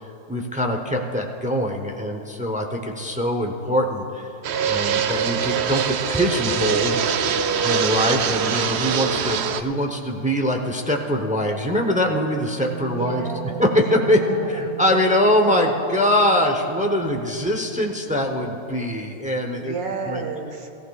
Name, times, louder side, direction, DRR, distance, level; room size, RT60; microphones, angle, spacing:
voice 1, 0.3-4.3 4.6-7.0 7.6-13.3 13.6-19.7 20.1-20.2, left 1 dB, 10° right, 2 dB, 0.4 m, -23 dB
Fixed-wing aircraft airplane, 4.4-9.6, right 7 dB, 90° right, 0.5 m, -23 dB
Wind instrument woodwind instrument, 12.4-18.6, right 8 dB, 20° left, 2.1 m, -38 dB
voice 2, 13.0-13.7 14.1-14.8 15.1-15.4 19.6-20.7, right 4 dB, 65° right, 3 dB, 1.6 m, -32 dB
19.0 x 14.5 x 2.3 m, 2.7 s
omnidirectional pair, 1.7 m